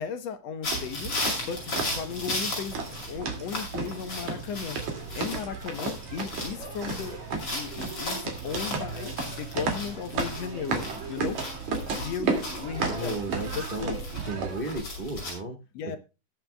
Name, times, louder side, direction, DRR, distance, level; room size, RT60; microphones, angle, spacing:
voice 1, 0.0-4.8 5.1-7.2 7.5-11.4 11.8-13.2 13.5-14.0 15.7-16.0, left 7 dB, 65° left, 9 dB, 1.9 m, -36 dB
sound 1, 0.6-15.3, left 2 dB, 45° left, 6.9 m, -36 dB
sound 2, 0.7-14.8, right 5 dB, 65° right, 3.6 m, -34 dB
voice 2, 12.9-14.0 14.3-15.6 15.8-16.0, right 2 dB, 35° right, 3 dB, 0.9 m, -34 dB
21.0 x 7.6 x 2.3 m, 0.29 s
omnidirectional pair, 3.5 m